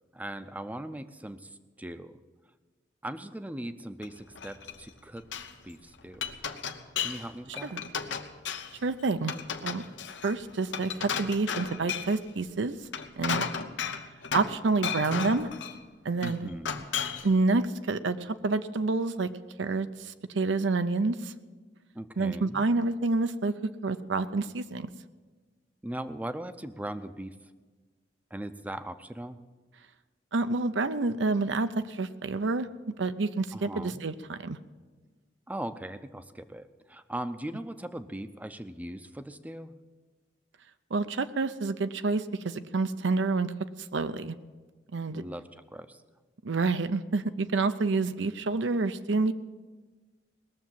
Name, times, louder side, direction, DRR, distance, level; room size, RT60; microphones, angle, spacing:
voice 1, 0.1-2.2 3.0-5.3 5.6-6.3 7.0-7.8 16.2-16.9 21.9-22.7 25.8-27.4 28.3-29.4 33.5-34.0 35.5-39.8 45.1-46.0, right 1 dB, 10° right, 11 dB, 0.5 m, -39 dB
Glass, 4.0-4.9 5.2-5.5 5.9-7.3 7.5-8.8 9.2-12.2 12.8-14.6 14.8-15.8 16.2-17.3, left 6 dB, 90° left, 0.9 m, -34 dB
voice 2, 8.8-9.3 9.6-9.8 10.2-12.8 13.2-13.4 14.3-15.5 16.0-16.5 17.2-19.3 19.6-21.3 22.2-23.5 23.8-24.9 30.3-34.6 40.9-43.5 43.9-44.4 44.9-45.2 46.4-49.3, right 3 dB, 80° right, 11 dB, 0.6 m, -28 dB
19.5 x 7.1 x 7.5 m, 1.3 s
head